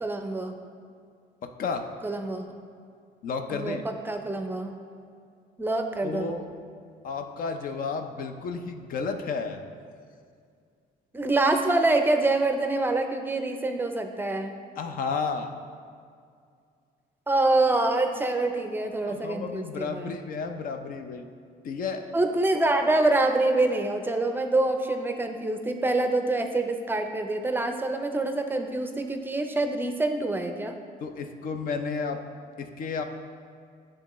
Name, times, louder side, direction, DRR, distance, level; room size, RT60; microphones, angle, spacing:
voice 1, 0.0-0.5 2.0-2.5 3.5-4.7 5.6-6.3 11.1-14.5 17.3-20.1 22.1-30.8, right 2 dB, 10° right, 5 dB, 0.5 m, -26 dB
voice 2, 1.4-1.9 3.2-3.8 6.0-6.4 7.0-9.6 14.8-15.5 19.1-21.3 21.6-22.1 31.0-32.2 32.6-33.0, left 5 dB, 55° left, 6 dB, 0.5 m, -32 dB
10.5 x 3.7 x 3.1 m, 2.3 s
cardioid pair, 110°, 17 cm